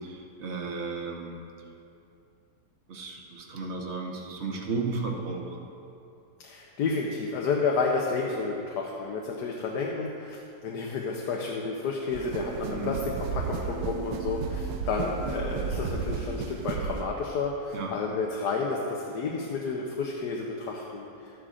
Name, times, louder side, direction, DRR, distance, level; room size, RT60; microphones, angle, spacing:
voice 1, 0.0-1.4 2.9-5.6 12.7-13.0 17.7-17.9, right 3 dB, 50° right, 0 dB, 1.2 m, -34 dB
voice 2, 6.4-21.1, left 4 dB, 85° left, -1 dB, 1.4 m, -31 dB
sound 1, 12.1-17.1, right 5 dB, 85° right, 1.2 m, -33 dB
13.0 x 11.0 x 2.5 m, 2.6 s
omnidirectional pair, 1.7 m